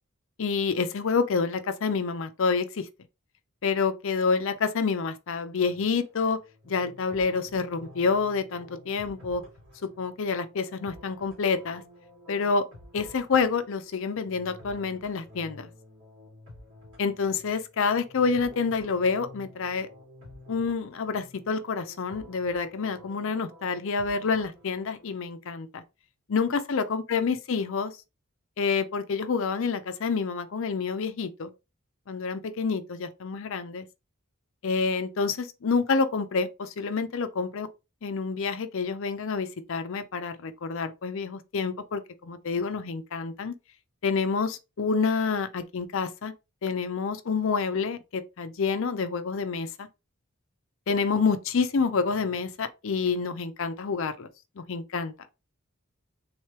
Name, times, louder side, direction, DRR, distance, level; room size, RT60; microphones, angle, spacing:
voice 1, 0.4-2.9 3.6-6.4 6.7-9.4 10.0-11.8 12.3-12.6 12.9-15.7 17.0-19.9 20.5-25.8 26.3-27.9 28.6-31.5 32.1-33.9 34.6-37.7 38.0-43.6 44.0-46.3 46.6-49.9 50.9-54.3 54.6-55.1, left 5 dB, 65° left, 0.5 m, -28 dB
sound 1, 5.6-25.2, left 1 dB, 65° right, 2.3 m, -51 dB
3.6 x 3.1 x 3.1 m
head